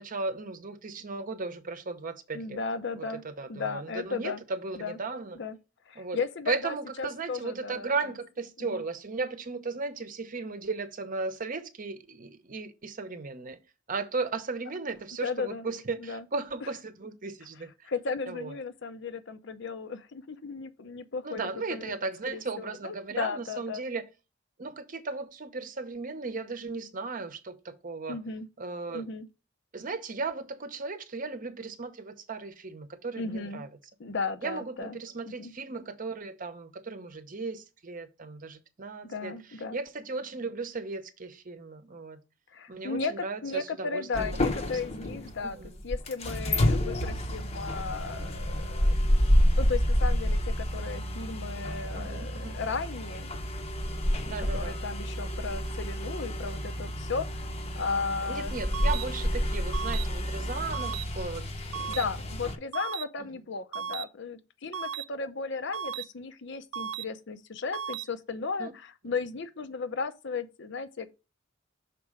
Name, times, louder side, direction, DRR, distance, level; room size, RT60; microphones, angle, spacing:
voice 1, 0.0-2.6 3.0-5.4 6.0-6.2 6.5-13.6 13.9-17.9 18.3-18.5 21.2-24.0 24.6-28.2 28.6-29.0 29.7-33.7 34.4-39.4 39.7-42.2 42.7-44.4 45.1-45.7 52.0-52.6 54.2-54.8 58.3-61.5 61.8-62.0 68.6-68.7, right 4 dB, 45° right, 0.8 m, -36 dB
voice 2, 2.3-3.2 3.5-4.4 4.8-5.0 5.4-5.6 5.9-7.9 8.6-8.8 15.2-15.6 16.0-16.2 17.8-21.4 21.7-21.9 22.3-23.8 28.1-28.5 28.9-29.3 33.2-33.6 34.0-35.5 39.0-39.8 42.5-45.6 45.8-48.9 49.6-53.3 54.4-57.5 57.8-58.5 61.9-71.1, left 4 dB, 65° left, 0.7 m, -35 dB
sound 1, 44.1-62.6, equal, 35° left, 0.8 m, -29 dB
sound 2, 58.7-59.0 59.7-60.0 60.7-61.0 61.7-62.0 62.7-63.0 63.7-64.0 64.7-65.0 65.7-66.0 66.7-67.0 67.7-68.0, right 8 dB, 90° right, 0.4 m, -35 dB
6.0 x 4.2 x 4.8 m
head